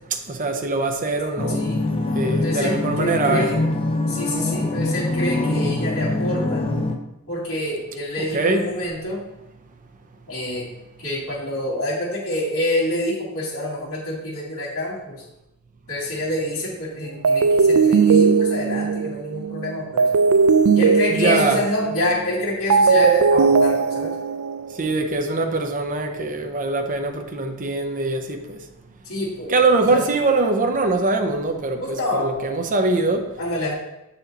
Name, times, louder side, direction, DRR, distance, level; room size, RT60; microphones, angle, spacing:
voice 1, 0.3-1.8 2.1-3.5 8.3-8.7 21.1-21.6 24.7-28.6 29.5-33.3, right 3 dB, 35° right, 0.7 m, -22 dB
sound 1, 1.4-7.0, left 2 dB, 25° left, 0.5 m, -24 dB
voice 2, 1.5-1.8 2.4-3.6 4.1-6.7 7.3-9.2 10.3-10.7 11.0-15.2 15.9-20.1 20.7-24.2 29.0-29.6 29.9-30.1 31.8-32.5 33.4-33.7, left 1 dB, 70° left, 2.0 m, -27 dB
sound 2, 17.2-24.9, right 5 dB, 75° right, 0.4 m, -18 dB
7.1 x 4.2 x 3.9 m
head